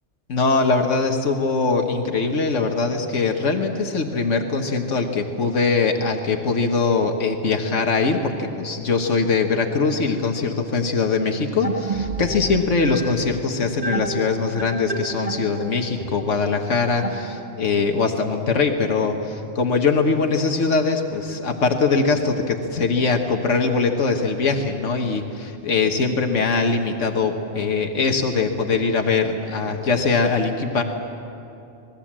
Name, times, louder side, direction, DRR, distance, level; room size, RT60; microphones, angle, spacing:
voice 1, 0.3-30.8, left 4 dB, 85° left, 4 dB, 1.7 m, -22 dB
sound 1, 11.6-17.8, right 2 dB, 30° right, 1.7 m, -31 dB
27.0 x 20.5 x 7.5 m, 2.8 s
omnidirectional pair, 1.2 m